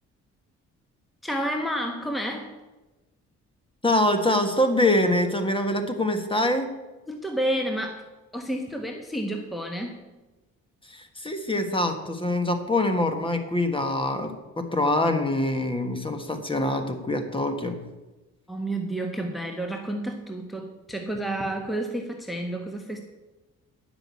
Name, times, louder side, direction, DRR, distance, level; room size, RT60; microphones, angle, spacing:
voice 1, 1.2-2.6 7.1-8.0 8.3-10.1 18.5-23.0, right 1 dB, ahead, 3 dB, 1.2 m, -30 dB
voice 2, 3.8-6.7 10.9-17.8, left 1 dB, 15° left, 6 dB, 1.5 m, -24 dB
10.0 x 6.1 x 8.3 m, 1.1 s
cardioid pair, 90°, 30 cm